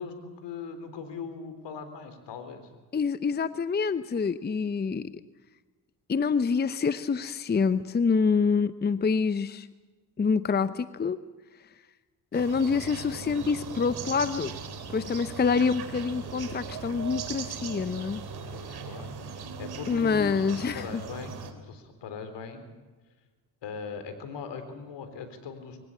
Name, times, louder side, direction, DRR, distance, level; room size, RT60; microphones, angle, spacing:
voice 1, 0.0-2.7 18.5-22.6 23.6-25.8, left 5 dB, 65° left, 9 dB, 3.8 m, -40 dB
voice 2, 2.9-5.1 6.1-9.7 10.2-11.2 12.3-14.5 14.9-18.2 19.9-21.0, left 5 dB, 20° left, 14 dB, 0.7 m, -26 dB
sound 1, 12.3-21.5, right 5 dB, 55° right, 3.0 m, -39 dB
23.0 x 17.0 x 8.4 m, 1.3 s
supercardioid pair, 60°, 45 cm